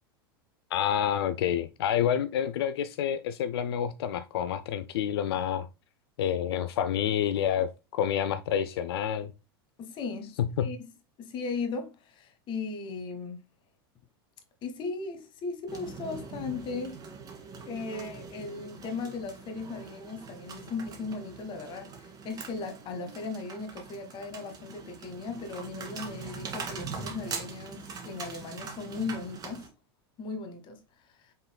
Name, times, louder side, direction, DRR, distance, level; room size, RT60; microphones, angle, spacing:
voice 1, 0.7-5.7 6.2-9.3 10.4-10.7, left 9 dB, 80° left, 0.4 m, -28 dB
voice 2, 9.8-10.9 11.2-13.4 14.6-17.0 17.7-29.7 30.2-30.8, left 4 dB, 40° left, 1.1 m, -37 dB
sound 1, 15.7-29.7, right 5 dB, 30° right, 1.4 m, -42 dB
5.5 x 3.7 x 2.2 m
hypercardioid pair, 110°, 13 cm